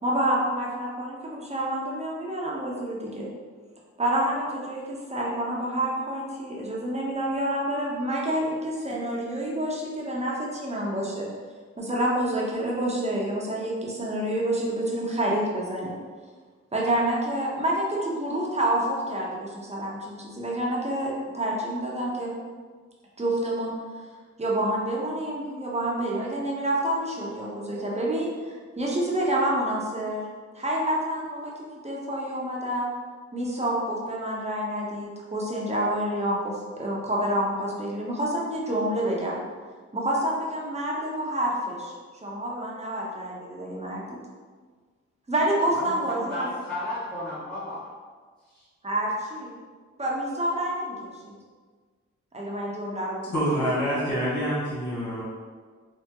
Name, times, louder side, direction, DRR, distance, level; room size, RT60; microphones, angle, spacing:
voice 1, 0.0-3.3 4.0-11.3 11.8-16.0 16.7-22.3 23.2-23.7 24.4-30.2 30.5-31.5 31.8-32.9 33.3-39.4 39.9-41.9 42.2-44.0 45.3-46.5 48.8-49.5 50.0-51.3 52.3-53.3, right 1 dB, 20° right, -4 dB, 0.9 m, -28 dB
voice 2, 45.7-47.9 48.4-48.6, left 1 dB, 5° left, -12 dB, 1.0 m, -34 dB
voice 3, 53.3-55.2, equal, 70° left, -9 dB, 1.3 m, -26 dB
3.5 x 2.1 x 2.9 m, 1.5 s
cardioid pair, 50°, 30 cm